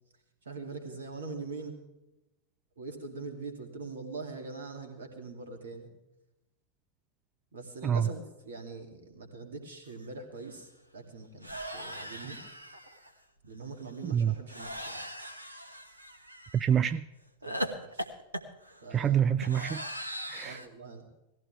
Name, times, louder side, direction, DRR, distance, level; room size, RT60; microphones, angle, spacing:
voice 1, 0.4-1.7 2.8-5.9 7.5-12.4 13.4-15.0 17.4-18.1 18.8-19.2 20.4-21.1, right 3 dB, 65° right, 2.6 m, -43 dB
sound 1, 10.0-10.1 10.4-10.6 11.4-13.1 14.5-16.7 17.4-20.7, equal, 85° right, 1.2 m, -39 dB
voice 2, 14.0-14.3 16.5-17.0 18.9-19.8 20.3-20.6, right 8 dB, 25° right, 0.4 m, -26 dB
18.5 x 15.0 x 3.5 m
figure-of-eight pair, 90°, 0 cm